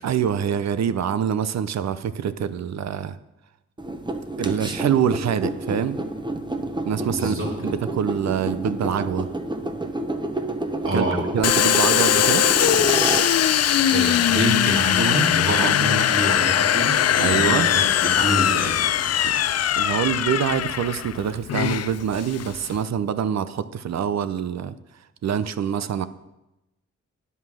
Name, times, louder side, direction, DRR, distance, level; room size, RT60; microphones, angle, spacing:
voice 1, 0.0-3.2 4.4-6.0 6.9-7.3 7.6-9.3 10.9-11.0 11.3-12.5 15.5-15.7 17.2-17.7 19.2-19.3 19.8-24.7 25.2-26.1, right 8 dB, 65° right, 14 dB, 0.6 m, -25 dB
sound 1, 3.8-14.1, right 2 dB, 15° right, 1.0 m, -29 dB
voice 2, 7.1-7.5 10.8-11.2 13.9-18.8, right 1 dB, 45° right, -1 dB, 2.7 m, -26 dB
Domestic sounds home sounds, 11.4-22.8, left 10 dB, 60° left, 0.4 m, -21 dB
9.6 x 5.5 x 6.2 m, 0.94 s
cardioid pair, 70°, 29 cm